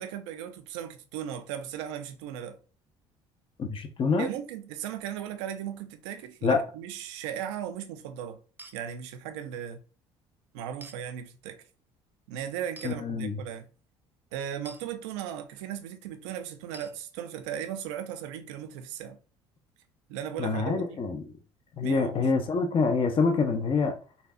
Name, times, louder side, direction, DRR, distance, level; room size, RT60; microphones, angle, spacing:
voice 1, 0.0-2.6 4.2-8.4 8.7-9.8 10.5-11.6 12.3-13.7 14.3-19.2 20.1-20.8 21.8-22.3, right 9 dB, 75° right, 0.5 m, -37 dB
voice 2, 3.6-4.3 6.4-6.6 12.8-13.4 20.4-21.3 21.8-23.9, left 4 dB, 35° left, 0.6 m, -26 dB
sound 1, 8.6-8.8 10.8-11.0 12.8-12.9 14.7-14.8 16.7-17.0, right 2 dB, 15° right, 0.5 m, -46 dB
4.2 x 2.7 x 2.5 m
hypercardioid pair, 60°, 15 cm